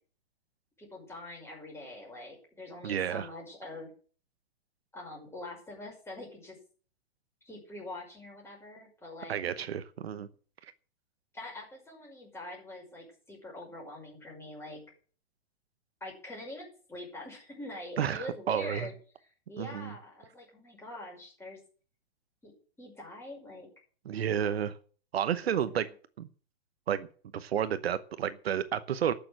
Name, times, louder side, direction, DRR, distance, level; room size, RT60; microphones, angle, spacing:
voice 1, 0.8-3.9 4.9-6.6 7.4-9.7 11.3-14.9 16.0-18.9 19.5-21.6 22.4-22.5 22.8-23.7 24.1-24.6 25.4-25.6, left 1 dB, 10° left, -1 dB, 5.9 m, -44 dB
voice 2, 2.8-3.3 9.3-10.3 18.0-18.9 19.6-19.9 24.0-24.8 25.1-25.9 26.2-26.3 26.9-27.1 27.3-29.1, right 9 dB, 75° right, 13 dB, 1.0 m, -31 dB
12.0 x 7.0 x 7.8 m, 0.42 s
hypercardioid pair, 130°, 31 cm